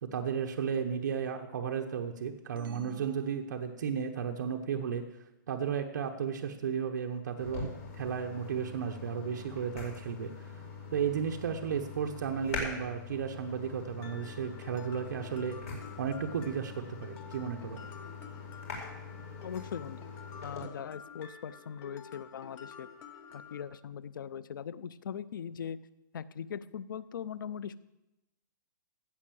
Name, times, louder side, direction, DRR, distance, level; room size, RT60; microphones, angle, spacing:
voice 1, 0.0-5.0 5.5-10.3 10.9-15.6 16.0-17.8, right 7 dB, 60° right, 3 dB, 1.0 m, -34 dB
sound 1, 2.6-4.2, right 8 dB, 85° right, 0.8 m, -52 dB
sound 2, 7.4-20.6, left 4 dB, 45° left, 4.7 m, -43 dB
Mallet percussion, 14.0-23.6, left 6 dB, 20° left, 0.7 m, -50 dB
voice 2, 19.4-20.0 20.4-22.9 23.3-25.8 26.1-27.8, left 8 dB, 75° left, 18 dB, 0.6 m, -40 dB
16.0 x 5.6 x 7.6 m, 0.94 s
hypercardioid pair, 175°, 11 cm